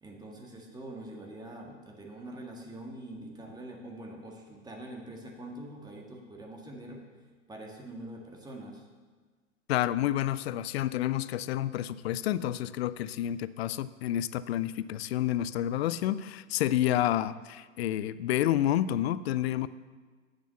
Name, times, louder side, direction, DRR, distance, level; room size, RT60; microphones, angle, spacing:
voice 1, 0.0-7.0 7.5-8.8, right 1 dB, 10° right, 1 dB, 1.7 m, -44 dB
voice 2, 9.7-19.7, left 12 dB, 50° left, 16 dB, 0.5 m, -29 dB
8.9 x 6.8 x 7.0 m, 1.4 s
hypercardioid pair, 105°, 40 cm